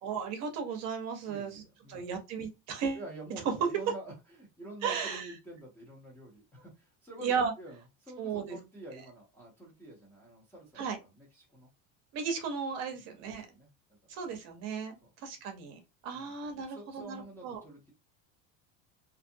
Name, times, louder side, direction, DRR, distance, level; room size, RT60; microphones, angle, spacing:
voice 1, 0.0-1.6 1.9-3.0 4.8-5.3 7.2-7.5 8.2-8.6 10.8-11.0 12.1-13.5 14.1-15.0 15.2-17.6, right 6 dB, 45° right, 5 dB, 0.7 m, -35 dB
voice 2, 1.2-2.0 2.9-11.7 12.9-13.7 14.0-14.1 15.0-15.1 16.1-16.3 16.7-17.9, right 1 dB, 5° left, -3 dB, 0.5 m, -48 dB
2.6 x 2.5 x 2.6 m, 0.24 s
cardioid pair, 165°, 37 cm